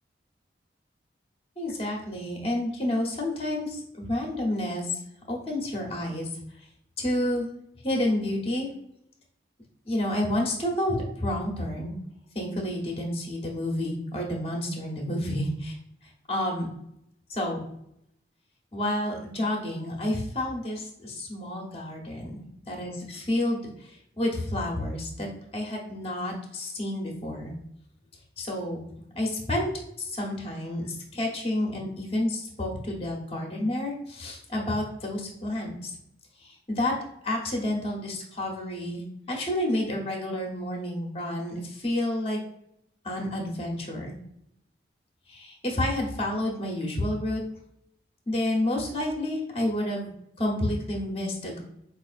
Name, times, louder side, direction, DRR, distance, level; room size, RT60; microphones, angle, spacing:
voice 1, 1.6-5.0 5.3-6.3 7.0-7.5 7.8-8.7 9.8-11.9 12.3-15.8 16.3-16.7 17.3-17.6 18.7-22.4 22.7-25.3 25.5-27.5 28.4-28.8 29.1-29.7 30.0-35.9 36.4-36.9 37.2-42.4 43.0-44.1 45.3-47.4 48.3-50.1 50.4-51.6, left 1 dB, 30° left, 0 dB, 0.9 m, -30 dB
4.7 x 2.5 x 2.4 m, 0.76 s
head